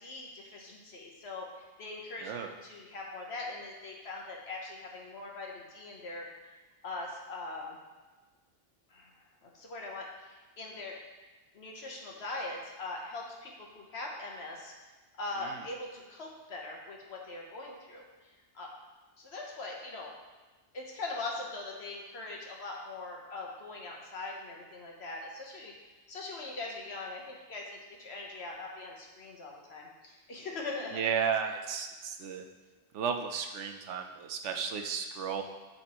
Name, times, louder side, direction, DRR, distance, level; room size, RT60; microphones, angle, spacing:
voice 1, 0.0-1.5 1.8-2.3 2.6-6.3 6.8-7.8 8.9-9.1 9.4-10.9 11.5-14.7 15.2-18.0 18.5-18.7 19.2-20.1 20.7-25.7 26.1-31.1, left 2 dB, 60° left, -1 dB, 1.3 m, -41 dB
voice 2, 30.9-32.4 32.9-35.4, right 7 dB, 75° right, 5 dB, 1.0 m, -33 dB
11.5 x 4.3 x 3.0 m, 1.3 s
omnidirectional pair, 1.2 m